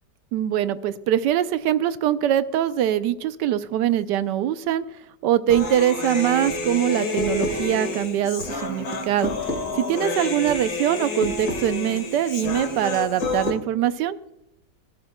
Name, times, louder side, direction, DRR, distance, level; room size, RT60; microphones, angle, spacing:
voice 1, 0.3-4.8 5.2-9.3 9.7-14.2, right 11 dB, 90° right, 13 dB, 1.2 m, -23 dB
Human voice, 5.5-13.5, left 2 dB, 65° left, 2.3 m, -28 dB
17.0 x 12.5 x 2.2 m, 0.88 s
omnidirectional pair, 1.8 m